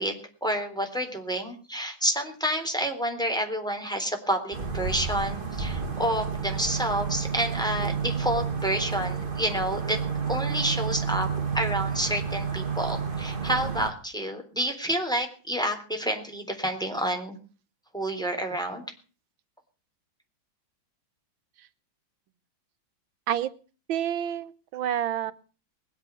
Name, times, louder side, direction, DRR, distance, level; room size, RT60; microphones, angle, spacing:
voice 1, 0.0-10.0 10.3-11.3 11.5-17.4 17.9-18.8, right 1 dB, ahead, 4 dB, 3.6 m, -29 dB
sound 1, 4.5-13.9, right 6 dB, 30° right, 1.9 m, -30 dB
voice 2, 23.9-25.3, right 10 dB, 85° right, 15 dB, 1.8 m, -28 dB
21.0 x 8.2 x 8.2 m, 0.39 s
omnidirectional pair, 2.1 m